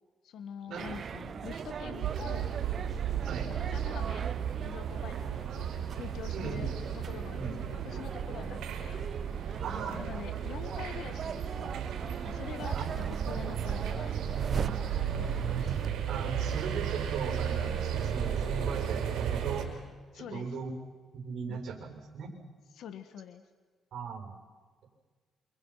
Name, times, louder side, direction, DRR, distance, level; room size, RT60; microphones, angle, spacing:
voice 1, 0.2-2.5 3.5-4.3 4.6-5.7 6.0-9.1 10.0-12.9 13.3-14.1 14.5-15.8 20.1-20.5 21.5-21.6 22.8-23.4, left 8 dB, 75° left, 9 dB, 2.0 m, -45 dB
sound 1, 0.8-15.9, right 7 dB, 50° right, 0.8 m, -39 dB
sound 2, 2.0-19.7, right 8 dB, 85° right, 5.2 m, -34 dB
voice 2, 6.3-6.8 7.3-7.5 8.3-8.5 9.6-10.0 12.7-13.1 16.1-19.7 20.1-20.7 21.1-22.3 23.9-24.3, right 5 dB, 70° right, 3 dB, 7.1 m, -38 dB
28.5 x 27.5 x 6.0 m, 1.4 s
cardioid pair, 90°, 0 cm